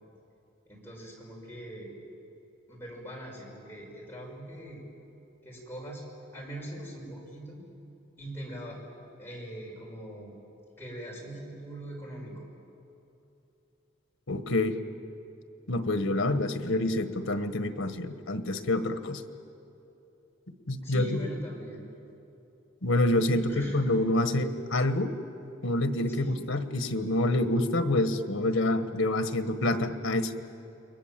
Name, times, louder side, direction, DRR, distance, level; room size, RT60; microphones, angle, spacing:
voice 1, 0.7-1.9 2.7-4.8 5.4-6.0 6.3-7.6 8.2-8.8 9.2-10.3 10.8-12.5 20.8-21.8 23.3-23.8 26.1-26.4, right 1 dB, 10° left, -3 dB, 5.8 m, -41 dB
voice 2, 14.3-14.8 15.7-19.2 20.7-21.2 22.8-25.1 25.6-30.3, left 1 dB, 80° left, 9 dB, 1.5 m, -27 dB
29.5 x 23.0 x 7.6 m, 2.8 s
head